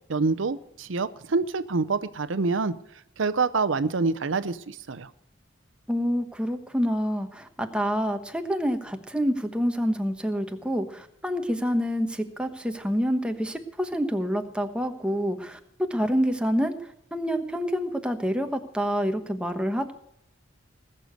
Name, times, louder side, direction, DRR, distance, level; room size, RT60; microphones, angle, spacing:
voice 1, 0.1-2.7 3.2-5.1, right 4 dB, 75° right, 14 dB, 0.7 m, -26 dB
voice 2, 5.9-15.6 15.9-19.9, equal, 5° right, 6 dB, 1.0 m, -27 dB
19.5 x 6.7 x 7.8 m, 0.71 s
head